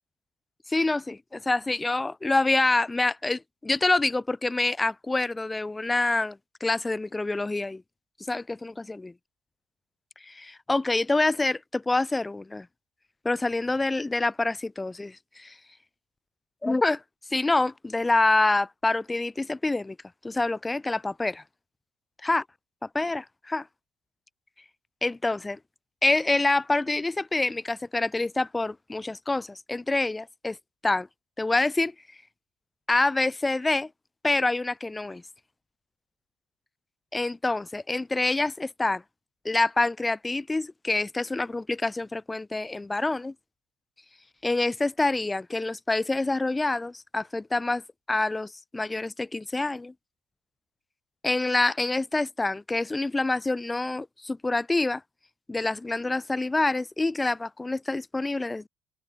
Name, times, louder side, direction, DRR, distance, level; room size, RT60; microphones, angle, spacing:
voice 1, 0.7-7.8 8.3-9.1 10.2-12.7 13.2-15.6 16.6-17.0 17.3-20.0 20.2-21.4 22.2-22.4 22.9-23.7 25.0-25.6 26.0-30.6 30.8-31.1 31.4-31.9 32.9-33.9 34.2-35.2 37.1-39.0 39.4-43.3 44.4-47.8 48.1-49.9 51.2-55.0 55.5-58.7, left 2 dB, 15° left, 2.0 m, -26 dB
open air
hypercardioid pair, 70°, 0 cm